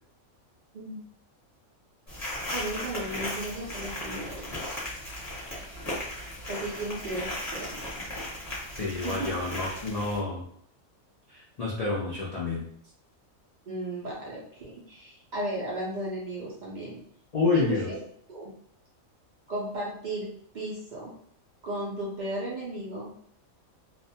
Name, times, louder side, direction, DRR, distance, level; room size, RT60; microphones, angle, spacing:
voice 1, 0.7-1.0 2.5-4.8 6.5-7.8 8.9-9.3 13.7-17.0 17.5-18.0 18.3-18.5 19.5-21.1 21.6-23.1, right 1 dB, 70° right, -5 dB, 0.4 m, -35 dB
sound 1, 2.1-10.2, left 1 dB, 15° left, 0.8 m, -36 dB
voice 2, 8.8-10.4 11.3-12.7 17.3-17.9, left 3 dB, 75° left, -6 dB, 0.3 m, -28 dB
2.4 x 2.1 x 2.7 m, 0.64 s
omnidirectional pair, 1.5 m